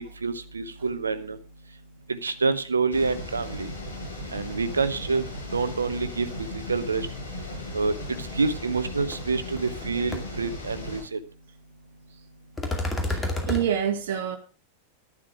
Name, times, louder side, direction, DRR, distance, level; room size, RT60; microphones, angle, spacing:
voice 1, 0.0-1.4 2.1-3.7 4.3-5.2 5.5-7.1 7.7-11.2, right 4 dB, 75° right, 12 dB, 1.0 m, -27 dB
sound 1, 2.9-11.0, left 1 dB, 70° left, 7.1 m, -37 dB
sound 2, 9.1-9.2 9.6-9.8 10.1-10.2 12.6-13.6, left 2 dB, 10° left, 2.3 m, -28 dB
voice 2, 13.0-14.4, right 9 dB, 55° right, 6 dB, 1.7 m, -27 dB
11.0 x 10.0 x 4.9 m, 0.35 s
figure-of-eight pair, 90°, 0 cm